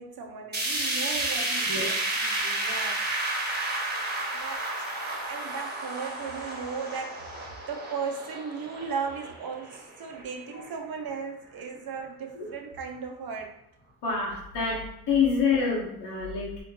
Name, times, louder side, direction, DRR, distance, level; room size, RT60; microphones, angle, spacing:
voice 1, 0.0-3.0 4.3-13.6, right 5 dB, 55° right, 2 dB, 0.8 m, -37 dB
sound 1, 0.5-10.7 11.1-11.2 11.6-11.7 12.5-12.6, right 2 dB, 25° right, 1.2 m, -31 dB
voice 2, 14.0-14.8 15.1-16.5, left 5 dB, 70° left, -7 dB, 1.2 m, -26 dB
4.2 x 2.9 x 2.8 m, 0.77 s
cardioid pair, 80°, 42 cm